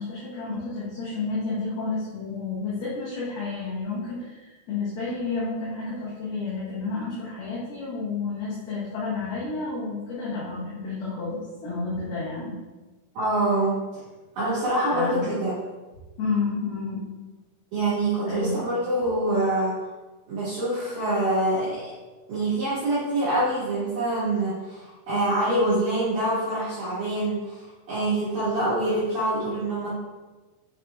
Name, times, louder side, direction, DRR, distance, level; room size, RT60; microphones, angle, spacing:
voice 1, 0.0-12.6 14.9-15.3 16.2-17.0 18.3-18.6, left 3 dB, 65° left, -10 dB, 3.1 m, -30 dB
voice 2, 13.1-13.8 14.3-15.6 17.7-19.8 20.3-21.9 22.3-29.9, right 1 dB, 55° right, -11 dB, 2.8 m, -25 dB
7.9 x 5.7 x 2.3 m, 1.2 s
omnidirectional pair, 5.4 m